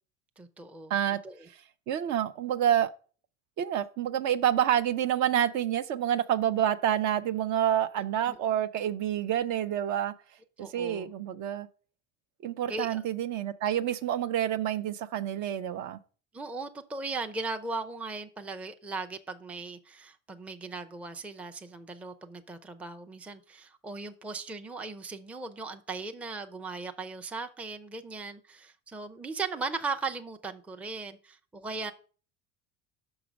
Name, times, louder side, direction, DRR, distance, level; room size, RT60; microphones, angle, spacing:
voice 1, 0.4-0.9 1.2-1.5 8.3-8.4 10.6-11.1 12.7-13.0 16.3-31.9, right 3 dB, 5° right, 0.4 m, -38 dB
voice 2, 1.9-2.9 3.6-10.1 10.6-11.7 12.4-16.0, right 10 dB, 50° right, 0.6 m, -28 dB
6.1 x 4.8 x 5.1 m
hypercardioid pair, 90°, 36 cm